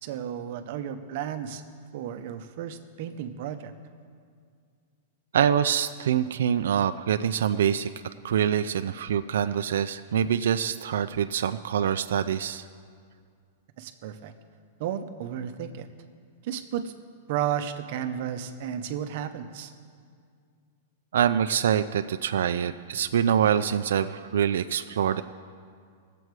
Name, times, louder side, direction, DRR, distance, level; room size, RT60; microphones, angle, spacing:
voice 1, 0.0-1.6 1.9-3.7 13.8-14.3 14.8-15.9 16.4-16.9 17.3-19.7, right 9 dB, 45° right, 8 dB, 0.7 m, -33 dB
voice 2, 5.3-7.9 8.2-12.6 21.1-25.2, right 9 dB, 80° right, 10 dB, 0.4 m, -25 dB
19.0 x 7.8 x 4.7 m, 2.2 s
supercardioid pair, 175°, 0 cm